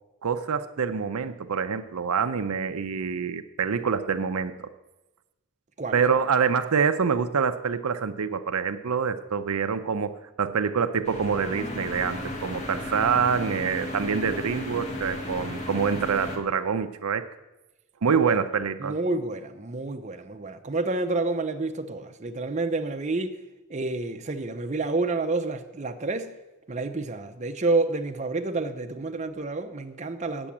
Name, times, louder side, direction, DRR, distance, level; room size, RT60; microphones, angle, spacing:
voice 1, 0.2-4.7 5.9-17.3 18.0-19.0, right 6 dB, 80° right, 0.6 m, -26 dB
sound 1, 11.0-16.4, left 1 dB, 30° left, 1.4 m, -34 dB
voice 2, 18.0-18.4 18.8-23.4 23.7-26.3 26.7-30.5, right 3 dB, 30° right, 0.7 m, -29 dB
8.8 x 7.0 x 8.4 m
head